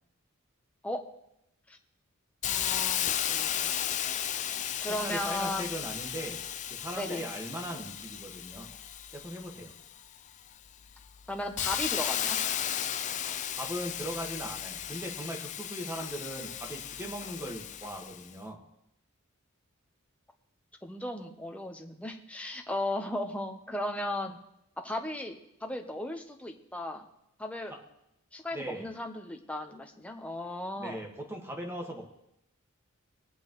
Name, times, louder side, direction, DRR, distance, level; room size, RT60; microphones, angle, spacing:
Hiss, 2.4-10.0 10.5-18.2, left 10 dB, 35° left, 0.4 m, -34 dB
voice 1, 2.4-4.2 4.8-5.7 7.0-7.3 11.3-12.4 20.8-24.4 24.8-27.0 27.4-27.7 28.3-31.0, left 1 dB, 5° left, 3 dB, 0.8 m, -36 dB
voice 2, 5.0-6.4 6.7-8.7 9.1-9.7 13.5-18.6 27.7-27.8 28.5-28.9 30.8-32.0, equal, 10° right, 0 dB, 1.6 m, -39 dB
21.5 x 8.2 x 3.1 m, 0.81 s
head